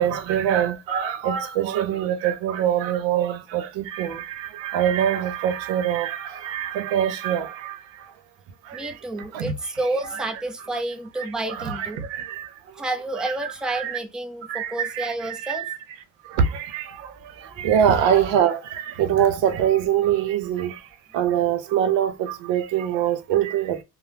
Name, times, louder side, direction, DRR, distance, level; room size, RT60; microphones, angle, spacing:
voice 1, 0.0-8.2 8.6-9.0 9.3-9.5 10.1-10.2 10.7-10.8 11.5-12.8 13.7-14.0 14.5-15.8 16.2-23.8, right 9 dB, 90° right, 0.7 m, -24 dB
voice 2, 8.7-12.0 12.7-15.6, right 2 dB, ahead, 0.3 m, -30 dB
3.1 x 2.0 x 2.7 m
cardioid pair, 120°, 43 cm